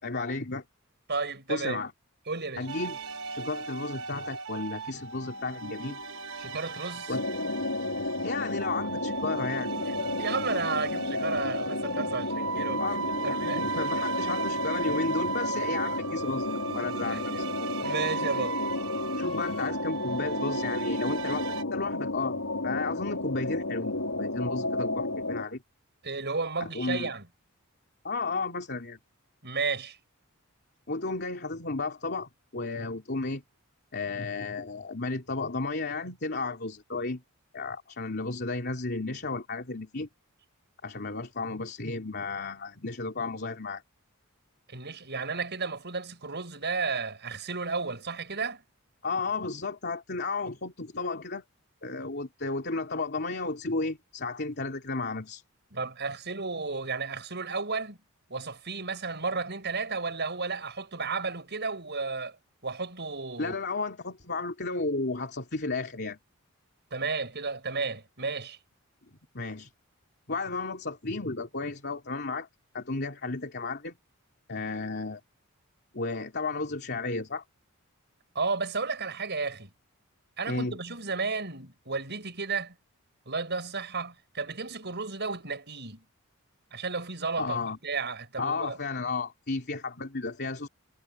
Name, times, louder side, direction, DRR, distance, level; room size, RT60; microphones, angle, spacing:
voice 1, 0.0-0.6 1.5-1.9 2.6-3.0 3.3-6.0 7.1-7.2 8.2-9.7 12.8-17.5 19.1-22.4 22.6-25.6 26.6-27.1 28.0-29.0 30.9-33.4 33.9-37.2 37.5-40.1 40.8-43.8 49.0-51.4 51.8-55.4 63.4-66.2 69.3-69.7 70.3-72.5 72.7-73.9 74.5-75.2 75.9-77.4 80.5-80.8 87.4-87.8 88.4-90.7, left 3 dB, 50° left, 3.1 m, -33 dB
voice 2, 1.1-1.8 2.3-2.7 6.4-7.1 10.2-12.8 13.2-13.6 17.1-17.2 17.8-18.6 26.0-27.2 29.4-30.0 44.7-48.6 55.7-58.0 58.3-62.4 62.6-63.6 66.9-68.6 78.3-79.7 80.4-82.7 83.3-86.0 86.7-88.8, right 4 dB, 50° right, 7.2 m, -33 dB
sound 1, 2.7-21.6, right 5 dB, 75° right, 6.3 m, -36 dB
sound 2, 7.1-25.4, left 2 dB, 75° left, 4.2 m, -32 dB
head